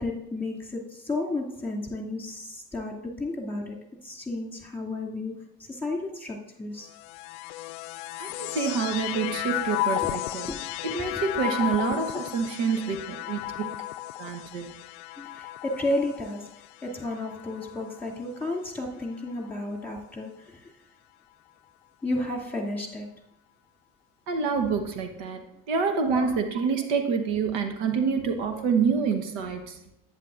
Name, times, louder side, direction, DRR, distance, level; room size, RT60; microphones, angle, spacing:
voice 1, 0.0-3.8 4.0-6.9 10.0-10.1 10.5-10.6 11.1-11.2 15.2-16.5 16.8-20.7 22.0-23.1 26.1-26.3, left 2 dB, 5° left, -1 dB, 2.5 m, -32 dB
sound 1, 6.9-18.4 19.1-19.9, left 16 dB, 70° left, 0.5 m, -34 dB
voice 2, 8.2-10.5 10.8-13.7 14.2-14.7 24.3-29.9, right 5 dB, 70° right, 7 dB, 1.3 m, -27 dB
11.0 x 9.1 x 2.6 m, 0.83 s
hypercardioid pair, 70°, 49 cm